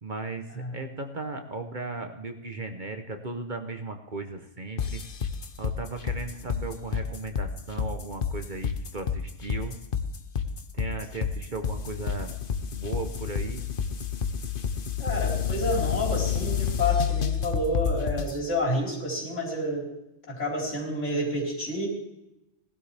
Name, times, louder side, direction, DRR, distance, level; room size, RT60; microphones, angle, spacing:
voice 1, 0.0-5.0 5.6-9.7 10.7-12.3 12.8-13.7, right 3 dB, 40° right, 6 dB, 1.1 m, -36 dB
sound 1, 4.8-18.4, left 7 dB, 45° left, 1.0 m, -29 dB
voice 2, 15.0-19.9 20.3-21.9, left 1 dB, 65° left, -4 dB, 4.9 m, -29 dB
19.0 x 12.0 x 3.4 m, 0.90 s
omnidirectional pair, 1.3 m